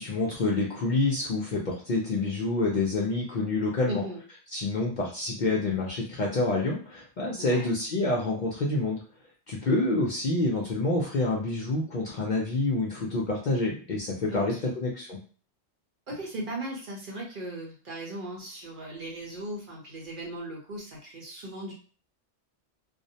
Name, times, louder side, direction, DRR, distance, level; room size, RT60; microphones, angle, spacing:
voice 1, 0.0-4.0 4.5-9.0 9.5-15.2, left 2 dB, 55° left, -3 dB, 0.5 m, -27 dB
voice 2, 3.8-4.2 7.4-7.7 14.3-14.7 16.1-21.7, right 1 dB, 50° right, -2 dB, 0.8 m, -37 dB
2.4 x 2.0 x 2.7 m, 0.40 s
omnidirectional pair, 1.2 m